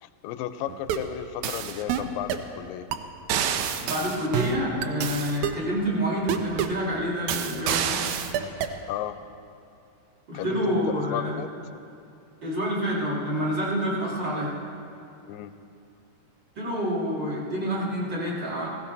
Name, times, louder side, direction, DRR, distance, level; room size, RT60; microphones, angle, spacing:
voice 1, 0.0-2.9 8.9-9.2 10.3-11.5 15.3-15.5, left 12 dB, 85° left, 11 dB, 2.3 m, -34 dB
sound 1, 0.7-1.1 1.4-2.5 2.9-3.0 3.3-5.6 6.3-6.8 7.3-8.8, right 9 dB, 80° right, 1.9 m, -28 dB
voice 2, 3.9-8.0 10.3-11.5 12.4-14.5 16.6-18.7, equal, 35° right, -6 dB, 3.0 m, -28 dB
17.0 x 16.5 x 4.0 m, 2.5 s
omnidirectional pair, 3.9 m